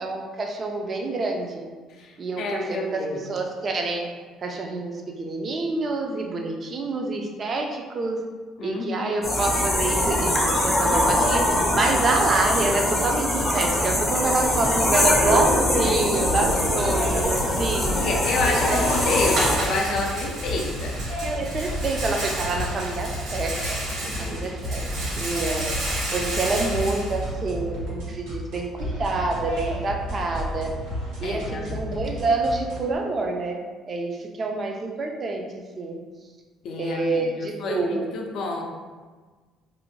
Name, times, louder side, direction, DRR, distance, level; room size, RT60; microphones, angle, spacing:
voice 1, 0.0-1.6 2.2-4.1 4.4-8.2 8.6-10.3 10.6-17.9 18.4-19.3 21.2-25.6 26.1-30.7 31.2-33.6 33.9-35.4 35.8-36.0 36.8-38.1, right 3 dB, 40° right, 2 dB, 0.4 m, -27 dB
voice 2, 2.0-3.2 8.6-9.1 17.9-21.0 24.0-24.4 31.2-31.9 36.6-38.6, left 3 dB, 65° left, 1 dB, 0.4 m, -29 dB
sound 1, 9.2-19.6, left 1 dB, 15° left, 0.5 m, -23 dB
sound 2, 16.3-33.0, equal, 90° right, 1.1 m, -33 dB
Rattle, 16.8-27.9, right 1 dB, 55° right, 0.9 m, -32 dB
2.5 x 2.1 x 3.0 m, 1.4 s
cardioid pair, 105°, 0 cm